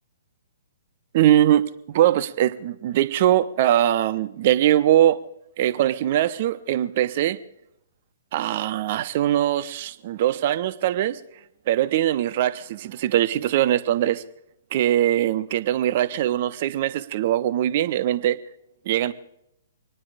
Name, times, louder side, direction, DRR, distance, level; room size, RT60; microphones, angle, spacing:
voice 1, 1.1-5.2 5.6-7.4 8.3-11.2 11.7-14.2 14.7-18.4 18.9-19.1, right 12 dB, 40° right, 13 dB, 0.9 m, -21 dB
26.0 x 9.8 x 5.0 m, 0.78 s
figure-of-eight pair, 120°, 0 cm